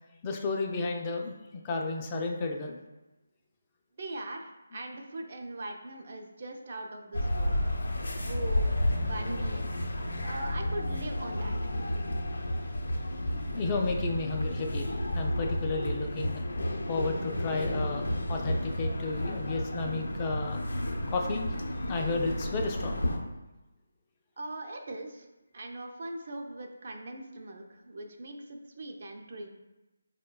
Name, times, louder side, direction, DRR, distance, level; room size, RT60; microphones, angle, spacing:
voice 1, 0.2-1.3 1.6-2.8 13.5-16.4 16.9-20.6 21.1-21.5 21.8-23.0, left 3 dB, 20° left, 1 dB, 0.3 m, -32 dB
voice 2, 4.0-7.6 8.2-8.7 9.0-9.8 10.2-11.6 24.4-25.3 25.5-29.5, right 2 dB, 50° right, 2 dB, 0.4 m, -40 dB
sound 1, 7.1-23.2, left 1 dB, 70° left, 0.5 m, -31 dB
4.9 x 2.1 x 2.2 m, 1.0 s
figure-of-eight pair, 155°, 0 cm